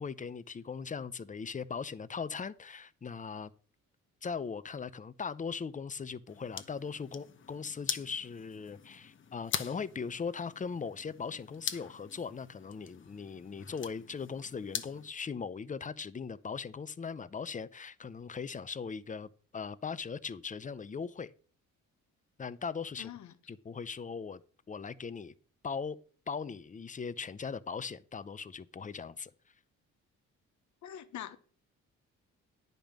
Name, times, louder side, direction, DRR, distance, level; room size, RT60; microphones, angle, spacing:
voice 1, 0.0-3.5 4.2-21.3 22.4-23.1 23.5-24.4 24.7-25.3 25.6-26.0 26.3-29.3, left 5 dB, 25° left, 0.7 m, -39 dB
sound 1, 6.3-15.1, left 7 dB, 40° left, 1.0 m, -43 dB
voice 2, 23.0-23.3 30.8-31.4, left 10 dB, 70° left, 1.2 m, -44 dB
10.0 x 5.3 x 7.5 m
cardioid pair, 90°, 30 cm